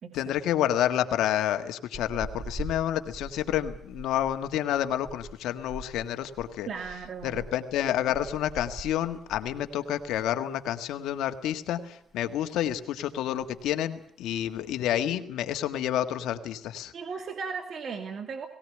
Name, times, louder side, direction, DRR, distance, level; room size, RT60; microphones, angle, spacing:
voice 1, 0.1-6.7 7.2-16.9, left 11 dB, 85° left, 8 dB, 1.6 m, -29 dB
sound 1, 1.9-10.5 10.7-10.9 11.3-12.2 12.5-12.9 13.1-13.2 13.4-13.8 14.4-14.9, right 2 dB, 20° right, 6.1 m, -43 dB
voice 2, 6.7-7.5 16.9-18.5, right 5 dB, 55° right, 6 dB, 2.5 m, -36 dB
19.0 x 18.0 x 9.7 m, 0.67 s
cardioid pair, 90°, 0 cm